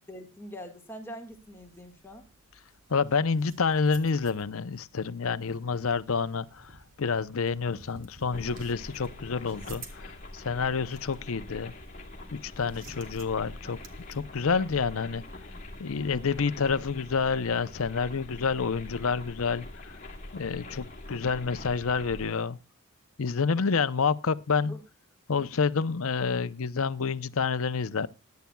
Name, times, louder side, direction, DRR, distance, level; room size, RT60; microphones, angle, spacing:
voice 1, 0.1-2.3 24.7-24.8, equal, 10° left, 1.6 m, -43 dB
sound 1, 1.3-14.2, right 3 dB, 60° right, 2.2 m, -53 dB
voice 2, 2.9-11.7 12.3-13.8 14.1-15.5 15.8-20.0 20.3-22.6 23.2-24.8 25.3-28.1, left 5 dB, 75° left, 0.6 m, -28 dB
sound 2, 8.3-22.3, left 2 dB, 35° left, 2.1 m, -44 dB
21.0 x 10.5 x 2.3 m
head